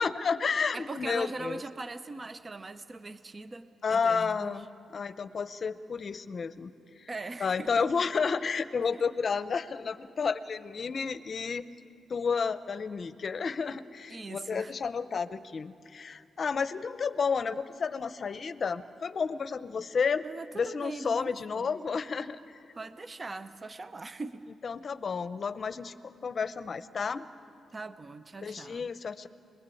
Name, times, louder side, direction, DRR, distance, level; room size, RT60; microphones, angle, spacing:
voice 1, 0.0-1.6 3.8-6.7 7.0-7.1 7.4-11.7 12.1-20.3 20.5-22.4 24.6-27.3 28.4-29.3, left 5 dB, 40° left, 13 dB, 0.8 m, -31 dB
voice 2, 0.7-4.7 7.1-7.9 8.9-9.0 14.1-14.7 20.2-21.8 22.7-24.5 27.7-28.9, right 3 dB, 25° right, 11 dB, 0.7 m, -41 dB
27.0 x 21.0 x 8.5 m, 2.5 s
cardioid pair, 145°, 0 cm